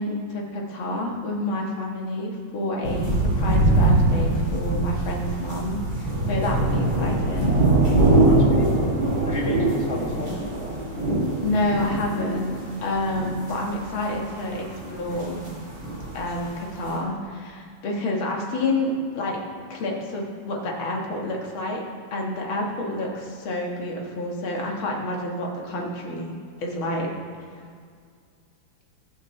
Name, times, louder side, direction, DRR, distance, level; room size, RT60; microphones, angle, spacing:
voice 1, 0.0-7.6 10.2-10.4 11.4-15.4 16.1-19.4 19.7-21.8 22.1-26.3 26.6-27.1, left 1 dB, 85° left, -1 dB, 2.4 m, -28 dB
sound 1, 2.8-16.5 16.9-17.0, right 2 dB, 75° right, 3.8 m, -23 dB
voice 2, 8.1-9.0 9.2-10.4 22.8-22.9, left 1 dB, 35° left, -2 dB, 1.8 m, -33 dB
19.5 x 6.9 x 3.3 m, 2.1 s
omnidirectional pair, 2.2 m